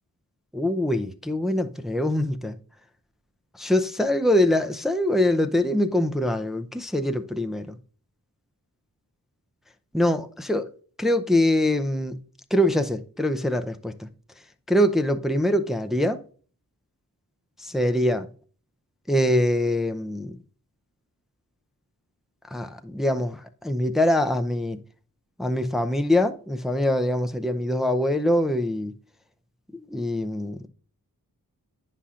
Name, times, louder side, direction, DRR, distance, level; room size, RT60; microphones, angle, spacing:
voice 1, 0.5-2.6 3.5-7.8 9.9-10.7 11.0-12.2 12.5-14.1 14.7-16.2 17.6-18.3 19.1-20.4 22.5-24.8 25.4-28.9 29.7-30.6, left 1 dB, ahead, 0.5 m, -23 dB
9.7 x 5.7 x 2.4 m
wide cardioid pair, 65°, 36 cm